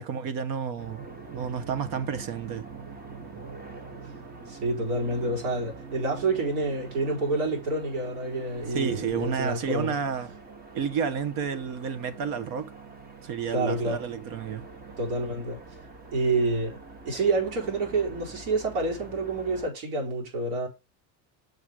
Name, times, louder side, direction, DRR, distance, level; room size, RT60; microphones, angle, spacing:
voice 1, 0.0-2.7 8.7-10.3 10.7-12.7 13.2-14.7, right 7 dB, 55° right, 1.0 m, -31 dB
sound 1, 0.8-19.7, right 4 dB, 25° right, 1.1 m, -44 dB
voice 2, 4.5-9.9 13.5-14.0 15.0-15.6 16.1-16.8 17.1-20.7, right 2 dB, 75° right, 4.2 m, -28 dB
6.4 x 5.1 x 4.8 m
cardioid pair, 150°, 40 cm